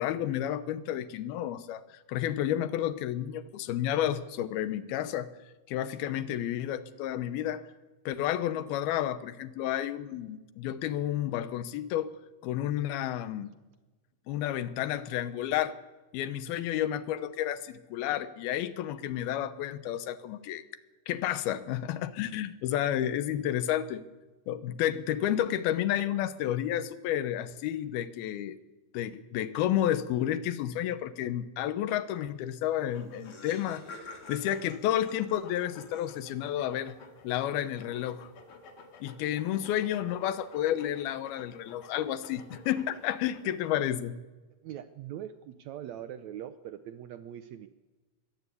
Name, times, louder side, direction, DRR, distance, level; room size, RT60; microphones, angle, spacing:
voice 1, 0.0-5.3 5.7-7.6 8.1-12.1 12.4-13.5 14.3-15.8 16.1-20.6 21.1-24.0 24.5-28.6 28.9-37.0 37.2-38.3 39.0-44.2, left 11 dB, 85° left, 13 dB, 2.9 m, -31 dB
Laughter, 32.6-32.7 32.9-36.6, left 3 dB, 40° left, 3.2 m, -48 dB
sound 1, 32.9-43.9, left 4 dB, 60° left, 3.3 m, -53 dB
voice 2, 44.6-47.7, right 10 dB, 90° right, 10 dB, 1.5 m, -42 dB
22.0 x 17.5 x 8.4 m, 1.2 s
omnidirectional pair, 4.3 m